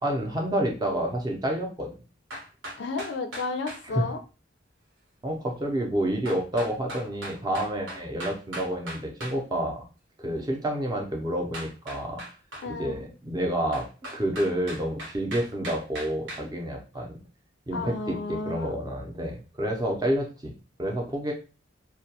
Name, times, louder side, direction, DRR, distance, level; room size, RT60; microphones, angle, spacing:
voice 1, 0.0-1.9 3.8-4.0 5.2-9.8 10.2-12.2 12.7-17.2 17.7-20.5 20.8-21.3, right 1 dB, 20° right, 1 dB, 0.5 m, -29 dB
sound 1, 2.3-3.8 6.2-9.4 11.5-12.7 13.7-16.4, right 1 dB, 85° right, 1.0 m, -39 dB
voice 2, 2.8-4.2 12.6-13.0 17.7-18.8, left 3 dB, 60° left, 7 dB, 0.4 m, -32 dB
2.2 x 2.2 x 2.7 m, 0.33 s
head